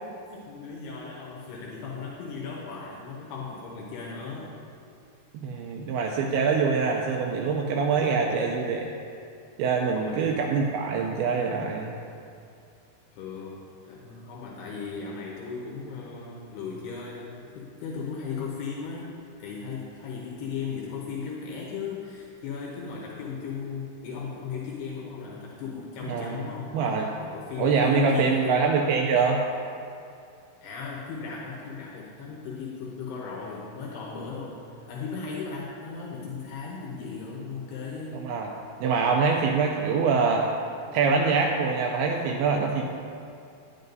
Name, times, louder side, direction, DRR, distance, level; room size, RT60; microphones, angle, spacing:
voice 1, 0.3-4.6 7.9-8.3 9.9-10.5 13.2-19.1 19.4-26.7 27.2-28.7 30.6-38.3, left 5 dB, 80° left, -3 dB, 2.8 m, -36 dB
voice 2, 5.4-8.9 9.6-11.9 26.1-26.4 26.7-27.1 27.6-29.4 38.2-38.5 38.8-40.5 40.9-42.8, right 5 dB, 85° right, 1 dB, 2.3 m, -24 dB
11.0 x 10.5 x 2.7 m, 2.5 s
omnidirectional pair, 4.9 m